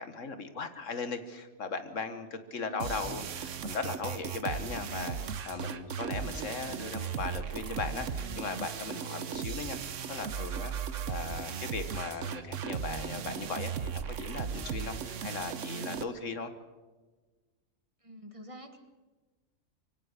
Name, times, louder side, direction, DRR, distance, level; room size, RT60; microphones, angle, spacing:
voice 1, 0.0-5.2 5.5-10.7 11.1-16.5, left 4 dB, 75° left, 9 dB, 1.8 m, -38 dB
voice 2, 2.6-3.0 4.7-5.3 18.0-18.8, equal, 25° right, 7 dB, 1.6 m, -48 dB
sound 1, 2.8-16.0, right 7 dB, 75° right, 1.3 m, -37 dB
23.5 x 17.0 x 6.7 m, 1.3 s
omnidirectional pair, 1.3 m